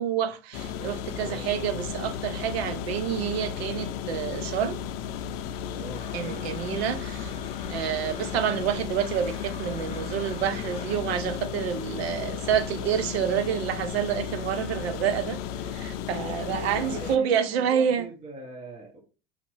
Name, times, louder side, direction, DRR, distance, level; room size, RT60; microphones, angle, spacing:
voice 1, 0.0-4.8 6.1-7.3 7.7-15.4 15.7-18.1, right 9 dB, 80° right, 0.6 m, -28 dB
sound 1, 0.5-17.2, left 8 dB, 70° left, 0.5 m, -34 dB
voice 2, 1.1-1.9 5.7-6.7 16.2-19.0, right 2 dB, 25° right, 1.0 m, -42 dB
Domestic sounds home sounds, 5.9-11.0, left 3 dB, 20° left, 1.3 m, -46 dB
5.8 x 2.8 x 2.6 m
hypercardioid pair, 85°, 31 cm